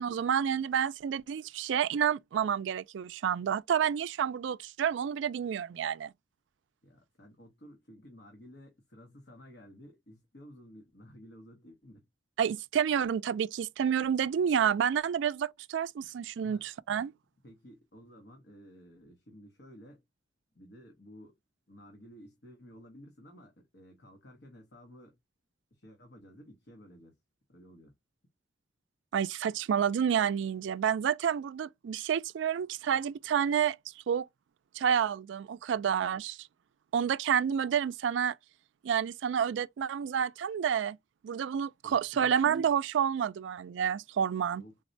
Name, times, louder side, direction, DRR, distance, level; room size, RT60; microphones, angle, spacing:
voice 1, 0.0-6.1 12.4-17.1 29.1-33.8 34.1-34.3 34.7-36.5 36.9-38.3 38.8-41.0 41.2-44.6, right 8 dB, 80° right, 0.3 m, -29 dB
voice 2, 6.8-12.1 16.4-16.7 17.4-20.0 20.5-21.4 21.7-25.2 25.7-27.2 27.5-27.9 41.8-42.4 44.6-44.8, equal, 65° left, 1.0 m, -53 dB
3.8 x 2.1 x 2.5 m
head